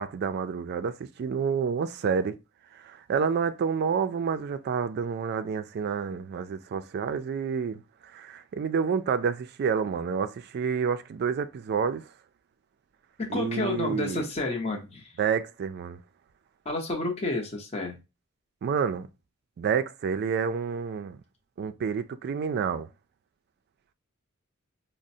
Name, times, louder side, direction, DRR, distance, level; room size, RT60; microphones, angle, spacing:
voice 1, 0.0-2.4 2.7-12.1 13.3-14.2 15.2-16.0 18.6-19.1 19.6-21.2 21.6-22.9, right 6 dB, 50° right, 0.3 m, -29 dB
voice 2, 13.2-15.1 16.6-18.0, left 2 dB, 30° left, 0.7 m, -30 dB
4.9 x 2.0 x 2.6 m
head